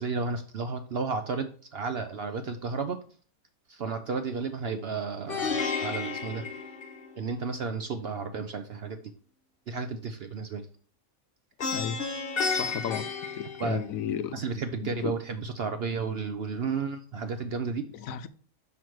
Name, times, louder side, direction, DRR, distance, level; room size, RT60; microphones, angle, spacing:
voice 1, 0.0-3.0 3.7-6.5 7.2-9.1 9.7-10.7 13.6-13.8 14.3-17.8, right 5 dB, 60° right, 0.6 m, -32 dB
Plucked string instrument, 5.3-7.4 11.6-14.2, left 5 dB, 45° left, 1.0 m, -32 dB
voice 2, 12.5-13.1 13.3-14.4 14.8-15.1 17.9-18.3, left 9 dB, 75° left, 0.9 m, -33 dB
6.0 x 5.7 x 4.7 m
omnidirectional pair, 1.5 m